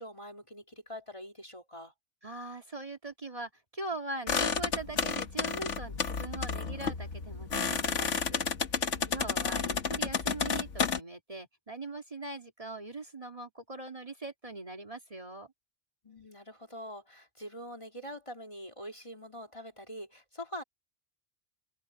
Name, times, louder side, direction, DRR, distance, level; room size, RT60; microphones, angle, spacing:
voice 1, 0.0-1.9 8.9-9.4 16.0-20.6, equal, 25° left, 2.5 m, -44 dB
voice 2, 2.2-8.4 8.7-15.5, right 2 dB, 30° right, 2.1 m, -41 dB
sound 1, 4.3-11.0, left 6 dB, 90° left, 1.7 m, -31 dB
open air
omnidirectional pair, 1.2 m